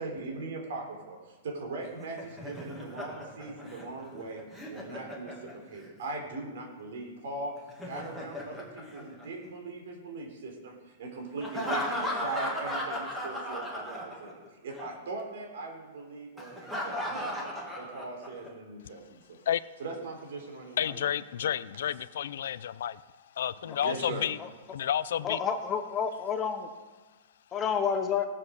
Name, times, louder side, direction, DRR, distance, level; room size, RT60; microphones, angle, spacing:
voice 1, 0.0-4.4 4.7-7.5 7.8-19.4 19.8-21.1 22.4-22.5 23.6-24.3, right 3 dB, 60° right, 3 dB, 3.7 m, -40 dB
Laughter, 1.8-5.9 7.6-9.7 11.4-14.5 14.7-14.9 16.4-18.5, left 1 dB, 5° right, 1.8 m, -36 dB
voice 2, 20.8-23.0 23.4-24.4 24.7-25.4, left 10 dB, 65° left, 17 dB, 0.4 m, -30 dB
voice 3, 25.2-26.7 27.5-28.3, left 7 dB, 15° left, 7 dB, 0.7 m, -29 dB
18.0 x 7.4 x 6.4 m, 1.3 s
supercardioid pair, 175°, 0 cm